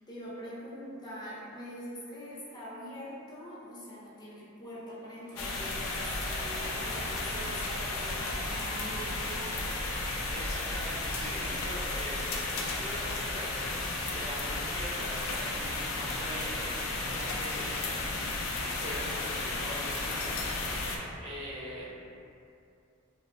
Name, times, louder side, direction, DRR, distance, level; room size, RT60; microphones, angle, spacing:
voice 1, 0.0-9.7, equal, 20° left, -7 dB, 0.5 m, -44 dB
sound 1, 5.1-15.9 16.2-16.3, right 2 dB, 70° right, 0.4 m, -47 dB
sound 2, 5.4-21.0, left 2 dB, 90° left, 0.4 m, -34 dB
voice 2, 10.3-18.1 18.6-20.4 20.7-21.9, equal, 30° right, -7 dB, 0.7 m, -42 dB
2.6 x 2.3 x 3.6 m, 2.6 s
head